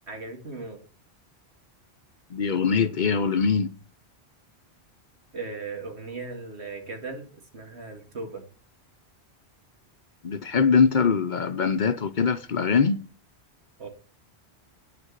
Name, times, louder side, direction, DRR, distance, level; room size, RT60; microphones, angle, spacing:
voice 1, 0.1-0.8 5.3-7.3 7.5-8.4 13.8-13.9, right 3 dB, 85° right, 2.5 m, -37 dB
voice 2, 2.3-3.7 10.2-13.0, left 5 dB, 50° left, 0.8 m, -22 dB
9.3 x 6.4 x 7.3 m
omnidirectional pair, 1.1 m